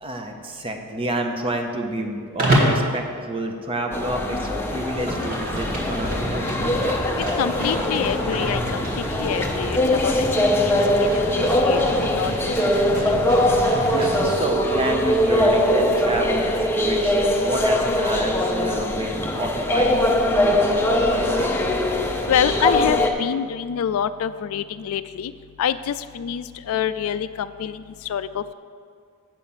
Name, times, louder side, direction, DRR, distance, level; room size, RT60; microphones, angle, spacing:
voice 1, 0.0-6.7 13.9-21.8, right 1 dB, 25° right, 4 dB, 0.7 m, -29 dB
Livestock farm animals working animals, 2.4-2.8 4.6-14.4, right 1 dB, 40° right, 1.7 m, -28 dB
sound 1, 3.9-23.1, left 1 dB, 10° left, 0.6 m, -22 dB
voice 2, 7.4-13.3 22.3-25.3 25.6-28.5, left 8 dB, 70° left, 14 dB, 0.3 m, -27 dB
7.5 x 5.6 x 7.2 m, 2.2 s
head